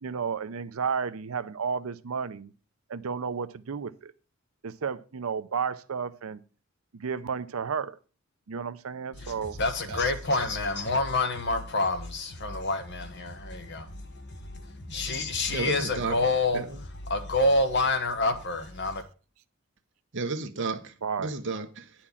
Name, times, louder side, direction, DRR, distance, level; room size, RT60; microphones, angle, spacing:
voice 1, 0.0-2.5 2.9-4.1 4.6-6.4 6.9-8.0 8.5-9.6 9.9-10.5 21.0-21.3, right 6 dB, 80° right, 0.6 m, -32 dB
voice 2, 9.2-13.9 14.1-16.6 17.1-19.0, left 2 dB, 55° left, 1.4 m, -28 dB
voice 3, 15.5-16.2 16.5-16.8 20.1-21.9, right 4 dB, 60° right, 1.0 m, -32 dB
9.8 x 4.4 x 7.1 m
head